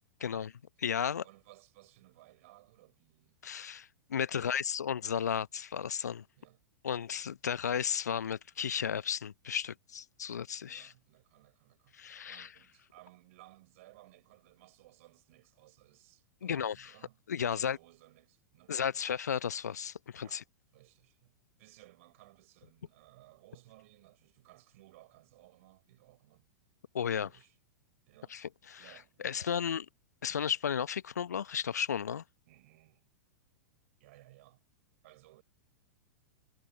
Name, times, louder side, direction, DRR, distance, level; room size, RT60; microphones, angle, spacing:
voice 1, 0.2-0.5 1.2-3.4 4.3-4.5 6.4-6.6 10.6-12.0 12.2-19.0 20.2-20.5 20.7-26.5 27.2-27.6 28.1-28.4 28.8-29.7 32.5-33.0 34.0-34.6 35.0-35.4, right 19 dB, 50° right, 5.0 m, -60 dB
voice 2, 0.8-1.2 3.4-6.2 6.8-10.9 11.9-12.5 16.4-16.9 17.3-17.8 18.7-20.4 26.9-27.3 28.3-28.8 29.2-29.8 30.2-32.2, left 8 dB, 70° left, 1.1 m, -34 dB
figure-of-eight pair, 100°, 9 cm